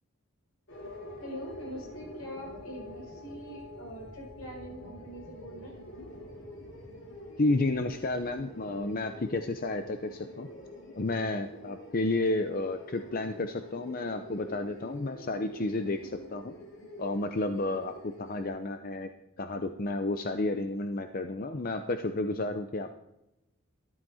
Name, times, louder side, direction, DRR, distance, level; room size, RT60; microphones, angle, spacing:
sound 1, 0.7-18.5, left 1 dB, 55° left, 2.8 m, -46 dB
voice 1, 1.2-5.8, equal, 75° left, 0 dB, 5.6 m, -43 dB
voice 2, 7.4-10.5 11.0-16.5 17.0-19.1 19.4-23.0, left 2 dB, 40° left, 7 dB, 0.7 m, -31 dB
13.5 x 13.0 x 4.2 m, 0.90 s
head